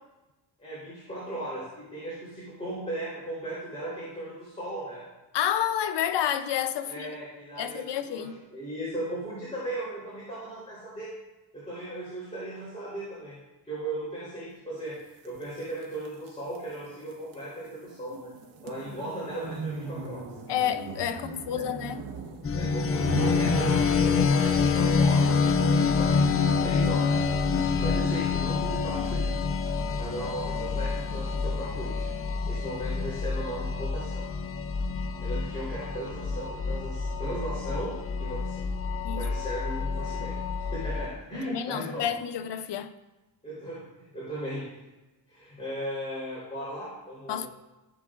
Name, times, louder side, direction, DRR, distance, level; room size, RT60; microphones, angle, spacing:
voice 1, 0.6-5.0 6.8-11.1 11.5-13.4 13.6-15.0 15.2-18.3 18.6-20.3 21.5-21.7 22.5-29.5 30.0-32.1 32.5-34.3 35.2-37.9 38.2-38.7 39.2-40.4 40.7-42.1 43.4-44.7 45.3-47.5, right 1 dB, 15° left, 3.7 m, -37 dB
voice 2, 5.3-7.1 7.6-8.3 20.5-22.1 39.0-39.3 41.3-42.9 47.3-47.5, left 10 dB, 70° left, 0.7 m, -29 dB
sound 1, 15.2-24.6, right 4 dB, 80° right, 1.4 m, -39 dB
sound 2, 22.4-41.1, left 5 dB, 30° left, 0.5 m, -27 dB
16.0 x 7.7 x 2.5 m
wide cardioid pair, 160°, 43 cm